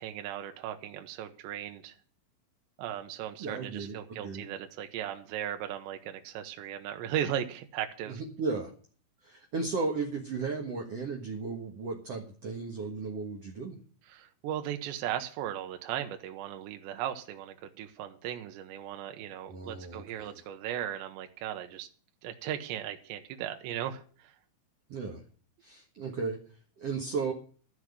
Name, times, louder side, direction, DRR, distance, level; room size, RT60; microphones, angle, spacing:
voice 1, 0.0-1.9 2.8-8.2 14.1-21.9 22.2-24.4, right 10 dB, 80° right, 6 dB, 3.1 m, -37 dB
voice 2, 3.4-4.5 8.1-8.7 9.2-13.8 19.5-20.4 24.9-25.2 25.6-26.4 26.8-27.3, right 4 dB, 65° right, 0 dB, 1.5 m, -35 dB
13.5 x 6.1 x 9.6 m, 0.43 s
omnidirectional pair, 5.2 m